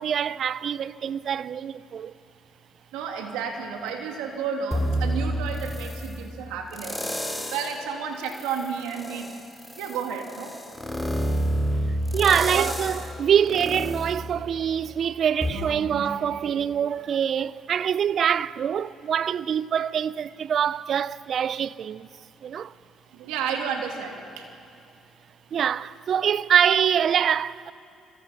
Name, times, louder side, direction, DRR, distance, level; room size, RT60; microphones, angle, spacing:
voice 1, 0.0-2.1 12.1-22.1 22.4-22.7 25.5-27.7, right 8 dB, 60° right, 0.5 m, -24 dB
voice 2, 2.9-7.0 7.5-9.3 9.8-10.5 12.5-12.9 15.5-16.4 23.1-24.5, right 6 dB, 85° right, 2.8 m, -32 dB
sound 1, 4.7-6.1 6.7-7.8 8.3-15.0 15.4-15.5, equal, 5° left, 3.7 m, -29 dB
26.5 x 26.5 x 5.9 m
supercardioid pair, 60°, 0 cm